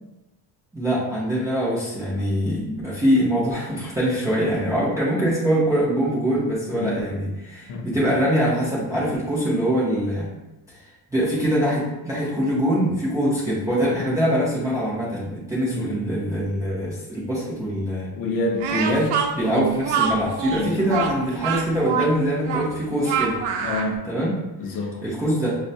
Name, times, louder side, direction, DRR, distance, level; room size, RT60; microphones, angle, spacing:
voice 1, 0.7-10.3 10.7-10.8 11.1-18.1 18.7-23.4 24.1-24.3 25.0-25.6, equal, 10° right, -8 dB, 0.3 m, -23 dB
voice 2, 18.1-18.6 19.4-19.7 20.6-20.8 23.6-24.0 24.6-25.0, left 2 dB, 55° left, 3 dB, 0.5 m, -27 dB
Speech, 18.6-23.9, right 6 dB, 80° right, 0.6 m, -25 dB
5.2 x 2.1 x 2.6 m, 0.98 s
cardioid pair, 180°, 42 cm